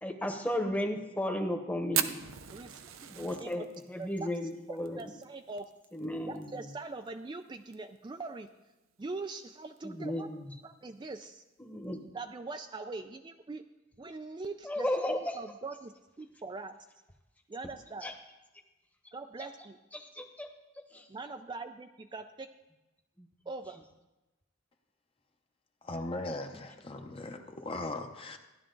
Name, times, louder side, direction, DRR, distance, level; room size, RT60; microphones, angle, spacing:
voice 1, 0.0-2.2 3.1-5.2 5.9-6.6 9.8-10.5 11.6-12.1 14.6-15.4 18.0-18.1 19.9-20.5 20.9-21.1 23.2-23.3, left 1 dB, 10° left, 4 dB, 1.0 m, -34 dB
Fire, 1.9-6.5 6.7-6.8 7.1-7.2 7.5-8.0 8.5-8.6 9.6-9.8, right 10 dB, 85° right, 0.7 m, -36 dB
voice 2, 3.2-3.6 4.0-4.1 5.0-5.7 6.3-8.5 9.0-10.3 10.6-11.4 12.1-13.6 14.0-16.8 17.5-18.1 19.1-19.8 21.1-22.5 23.5-23.8, right 3 dB, 25° right, 7 dB, 0.4 m, -42 dB
voice 3, 25.9-28.4, left 2 dB, 30° left, 5 dB, 0.8 m, -38 dB
15.0 x 11.0 x 3.9 m, 1.0 s
head